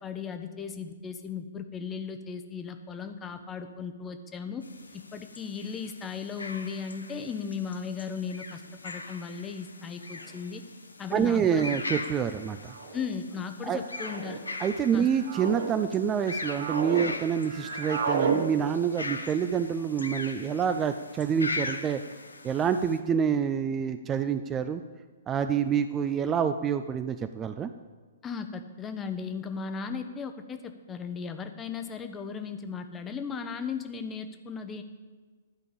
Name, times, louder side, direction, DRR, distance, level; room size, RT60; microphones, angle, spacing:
voice 1, 0.0-4.6 4.9-10.6 11.0-11.6 12.9-14.4 14.9-15.1 28.2-34.8, left 6 dB, 15° left, 8 dB, 0.9 m, -36 dB
sound 1, 4.6-23.0, left 3 dB, 80° left, 0.9 m, -40 dB
sound 2, 10.3-10.4 11.4-11.7 12.7-13.0 13.9-14.4 15.0-15.7 16.2-17.1 17.3-18.4, right 5 dB, 65° right, 1.6 m, -32 dB
voice 2, 11.1-12.7 13.6-13.8 14.6-22.0 22.4-24.8 25.3-27.7, right 7 dB, 20° right, 9 dB, 0.4 m, -27 dB
11.5 x 5.2 x 8.6 m, 1.4 s
figure-of-eight pair, 120°, 0 cm